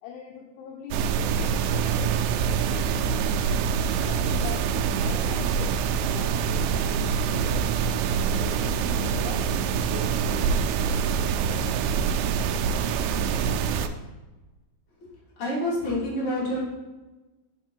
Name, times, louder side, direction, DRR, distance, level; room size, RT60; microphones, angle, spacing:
voice 1, 0.0-3.4 4.0-8.0 8.4-10.9, left 7 dB, 80° left, 1 dB, 2.9 m, -42 dB
sound 1, 0.9-13.9, right 6 dB, 85° right, 2.6 m, -25 dB
voice 2, 15.4-16.6, left 1 dB, 35° left, -8 dB, 2.7 m, -27 dB
6.6 x 6.2 x 4.5 m, 1.2 s
omnidirectional pair, 5.8 m